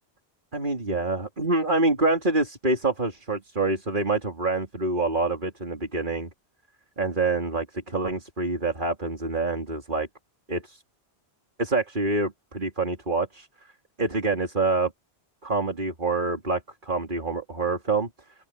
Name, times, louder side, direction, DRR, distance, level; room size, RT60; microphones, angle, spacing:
voice 1, 0.5-6.3 7.0-10.1 10.5-10.8 11.6-13.5 14.0-14.9 15.4-18.1, right 3 dB, 50° right, 3.4 m, -26 dB
open air
omnidirectional pair, 1.1 m